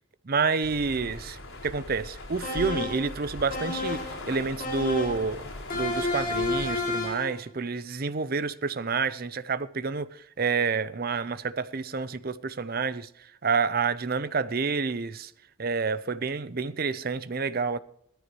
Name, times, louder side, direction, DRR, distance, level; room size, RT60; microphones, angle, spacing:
voice 1, 0.3-5.4 5.7-13.1 13.4-15.3 15.6-17.8, right 4 dB, 45° right, 0.6 m, -29 dB
sound 1, 0.6-6.8, left 2 dB, 90° left, 4.4 m, -40 dB
sound 2, 2.4-3.1 3.5-4.2 4.6-5.3 5.7-7.3, left 2 dB, 40° left, 2.8 m, -30 dB
18.0 x 14.0 x 3.1 m
head